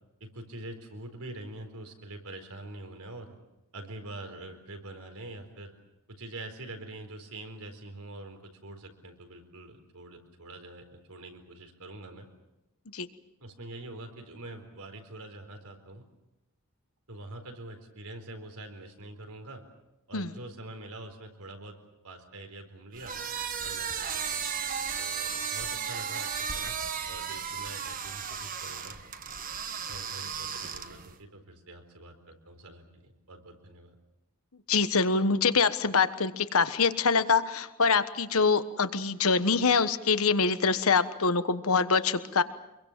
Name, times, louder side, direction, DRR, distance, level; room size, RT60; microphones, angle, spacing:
voice 1, 0.2-3.4 3.7-5.7 6.1-12.3 13.4-16.0 17.1-19.6 20.1-21.7 22.0-23.1 23.6-24.4 25.0-26.8 27.1-29.0 29.9-34.0, right 2 dB, 85° right, 5 dB, 4.2 m, -45 dB
sound 1, 22.9-31.1, right 7 dB, 40° right, 1.3 m, -35 dB
voice 2, 34.7-42.4, left 4 dB, 75° left, 12 dB, 1.3 m, -25 dB
26.0 x 23.0 x 7.4 m, 0.91 s
head